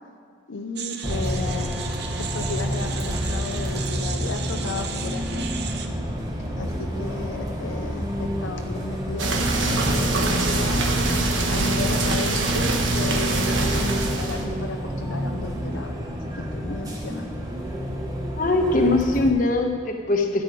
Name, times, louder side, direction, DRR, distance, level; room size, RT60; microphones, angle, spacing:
voice 1, 0.5-1.7 2.2-5.5 6.5-10.9 11.5-15.9 16.3-17.2, left 3 dB, 80° left, 4 dB, 0.7 m, -34 dB
sound 1, 0.8-5.9, right 7 dB, 55° right, 0.8 m, -35 dB
Bus, 1.0-19.3, equal, 20° right, 1.1 m, -29 dB
sound 2, 9.2-14.4, right 2 dB, 80° right, 1.3 m, -23 dB
voice 2, 18.3-20.4, left 2 dB, 45° left, 3 dB, 1.2 m, -21 dB
13.0 x 8.2 x 5.0 m, 2.2 s
head